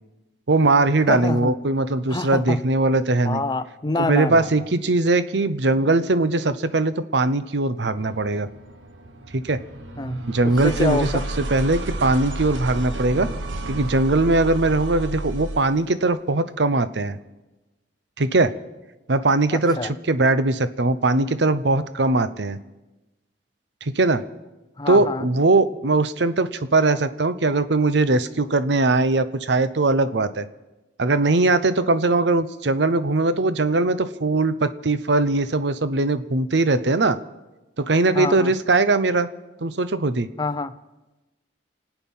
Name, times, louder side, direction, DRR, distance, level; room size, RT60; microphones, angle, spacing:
voice 1, 0.5-3.4 4.0-8.5 9.3-9.6 10.3-11.1 11.5-13.3 13.7-17.2 18.2-18.5 19.1-19.8 20.1-22.6 23.9-24.2 24.9-30.5 31.0-37.2 37.8-39.3 39.6-40.3, right 2 dB, 65° right, 13 dB, 0.7 m, -20 dB
voice 2, 1.1-1.6 2.1-2.6 3.2-4.5 10.0-10.2 10.4-11.2 19.5-19.9 24.8-25.3 38.1-38.5 40.4-40.7, left 2 dB, 20° left, 12 dB, 0.5 m, -26 dB
sound 1, 8.0-15.8, right 1 dB, 90° right, 1.4 m, -31 dB
27.0 x 9.2 x 5.5 m, 1.1 s
head